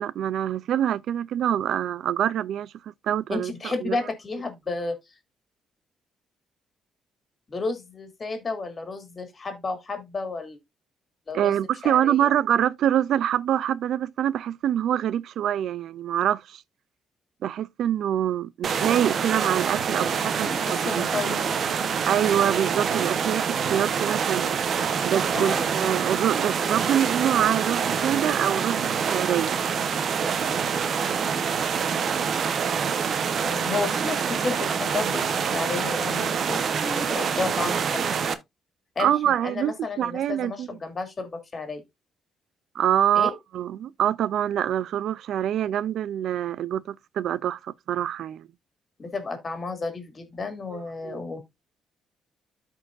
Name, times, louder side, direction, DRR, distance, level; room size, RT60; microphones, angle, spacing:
voice 1, 0.0-2.7 3.0-4.0 11.3-16.6 17.4-21.0 22.1-24.6 25.0-29.6 39.0-40.7 42.8-48.5 50.7-51.2, right 10 dB, 70° right, 0.3 m, -25 dB
voice 2, 3.3-5.0 7.5-10.6 11.3-11.6 11.8-12.3 20.4-21.5 25.3-25.6 33.4-38.3 39.0-41.8 43.1-43.3 49.0-51.4, left 3 dB, 35° left, 2.5 m, -32 dB
sound 1, 18.6-38.3, right 6 dB, 55° right, 0.9 m, -26 dB
13.0 x 4.5 x 2.5 m
cardioid pair, 95°, 0 cm